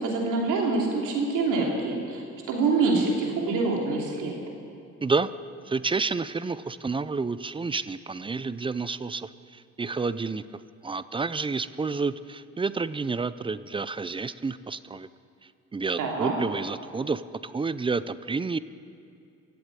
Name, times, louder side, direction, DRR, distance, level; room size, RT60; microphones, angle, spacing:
voice 1, 0.0-4.3 16.0-16.3, right 3 dB, 90° right, -1 dB, 3.0 m, -26 dB
voice 2, 5.7-10.4 10.8-15.1 15.7-18.6, right 4 dB, 15° right, 15 dB, 0.4 m, -29 dB
15.5 x 7.9 x 9.2 m, 2.5 s
cardioid pair, 90°, 30 cm